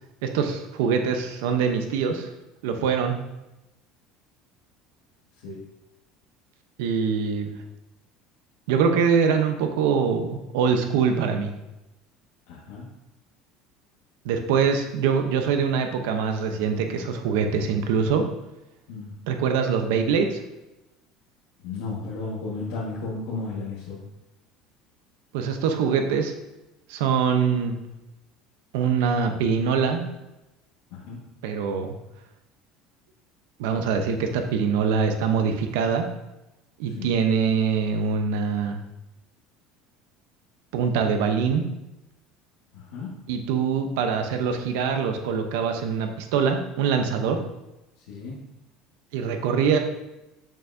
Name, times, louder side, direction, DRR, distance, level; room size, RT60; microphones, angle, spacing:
voice 1, 0.2-2.3 2.6-3.2 6.8-7.5 8.7-11.5 14.2-18.2 19.3-20.4 25.3-26.3 26.9-27.8 28.7-30.1 31.4-31.9 33.6-36.1 36.8-38.8 40.7-41.6 43.3-47.4 49.1-49.8, right 6 dB, 90° right, 6 dB, 0.8 m, -23 dB
voice 2, 12.5-12.9 18.9-19.1 21.6-24.0 30.9-31.2 36.9-37.1 42.7-43.2 48.1-48.4, left 3 dB, 85° left, -8 dB, 1.6 m, -34 dB
7.2 x 5.8 x 2.7 m, 0.96 s
cardioid pair, 170°, 0 cm